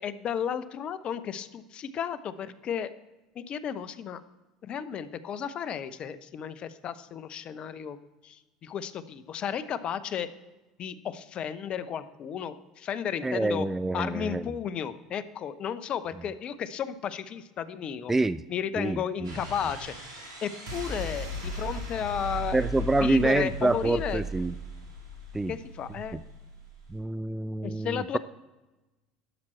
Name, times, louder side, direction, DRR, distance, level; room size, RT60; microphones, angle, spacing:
voice 1, 0.0-2.9 3.4-4.2 4.6-8.0 8.2-10.3 10.8-13.7 13.9-18.1 18.5-19.9 20.4-22.6 23.0-24.2 25.5-26.2 27.6-28.2, left 8 dB, 45° left, 14 dB, 0.7 m, -33 dB
voice 2, 13.2-14.5 18.1-18.4 18.8-19.3 22.5-24.5 25.3-25.5 26.1-26.2 26.9-28.2, right 2 dB, 10° right, 15 dB, 0.3 m, -27 dB
sound 1, 19.2-27.0, equal, 80° right, 3.2 m, -37 dB
12.0 x 5.9 x 4.4 m, 1.1 s
hypercardioid pair, 75°, 2 cm